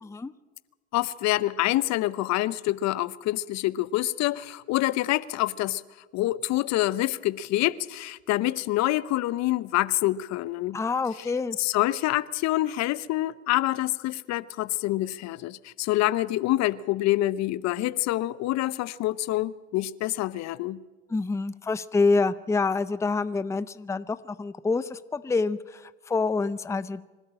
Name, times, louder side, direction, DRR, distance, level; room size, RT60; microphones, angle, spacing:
voice 1, 0.0-0.3 10.7-11.6 21.1-27.0, left 4 dB, 10° left, 0.6 m, -27 dB
voice 2, 0.9-5.8 6.1-10.8 11.6-20.8, left 16 dB, 50° left, 0.8 m, -26 dB
25.0 x 12.5 x 8.8 m
hypercardioid pair, 85°, 34 cm